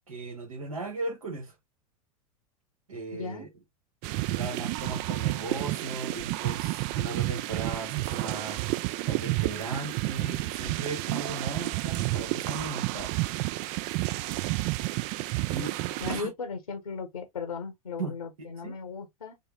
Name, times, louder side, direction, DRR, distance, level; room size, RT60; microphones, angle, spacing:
voice 1, 0.1-1.5 2.9-3.5 4.3-8.6 9.1-13.1 15.2-15.7 16.1-16.3 18.0-18.1 18.6-18.7, right 3 dB, 80° right, 1.5 m, -37 dB
voice 2, 3.1-3.5 16.0-19.4, left 5 dB, 85° left, 1.1 m, -37 dB
sound 1, 4.0-16.2, right 19 dB, 45° right, 0.4 m, -30 dB
5.4 x 2.1 x 3.3 m
figure-of-eight pair, 90°, 18 cm